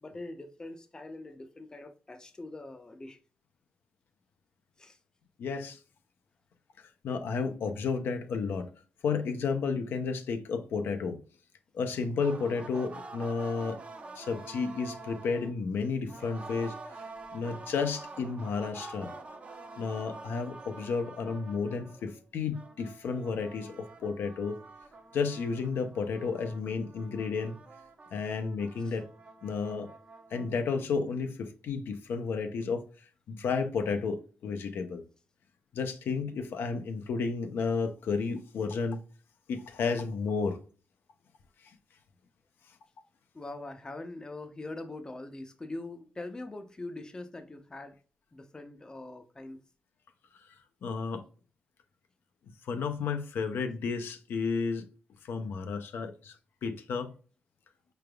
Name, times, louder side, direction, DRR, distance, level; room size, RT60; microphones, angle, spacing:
voice 1, 0.0-3.2 4.8-5.0 28.8-28.9 43.3-48.0 48.3-49.6, left 2 dB, 20° left, 0.6 m, -43 dB
voice 2, 5.4-5.8 7.0-8.7 9.0-11.2 11.7-13.8 14.1-16.7 17.3-19.1 19.8-24.6 25.1-27.6 28.1-29.1 29.4-29.9 30.3-32.9 33.3-35.0 35.7-39.0 39.5-40.6 41.6-41.7 50.3-50.4 50.8-51.2 52.6-54.9 55.2-56.4 56.6-57.1, left 5 dB, 80° left, 0.6 m, -32 dB
sound 1, 12.2-15.6 16.1-22.2 22.5-30.7, right 3 dB, 35° right, 0.6 m, -47 dB
4.9 x 3.3 x 2.2 m
cardioid pair, 115°, 4 cm